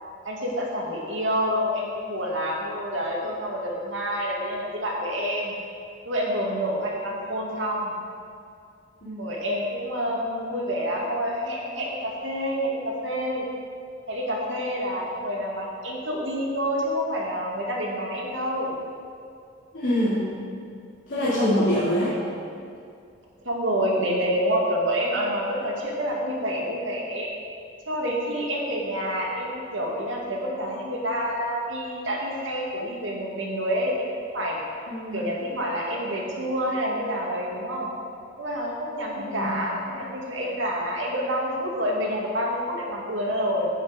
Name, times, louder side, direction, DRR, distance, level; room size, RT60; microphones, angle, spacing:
voice 1, 0.2-5.6 6.1-8.0 9.2-13.4 14.1-18.7 21.4-21.7 23.4-27.3 27.9-34.0 34.3-34.6 35.1-37.9 38.4-43.7, equal, 85° right, -2 dB, 2.4 m, -28 dB
voice 2, 19.7-20.3 21.1-22.2 34.9-35.3 39.2-39.5, left 1 dB, 75° left, -12 dB, 3.0 m, -25 dB
11.0 x 5.9 x 8.2 m, 2.4 s
head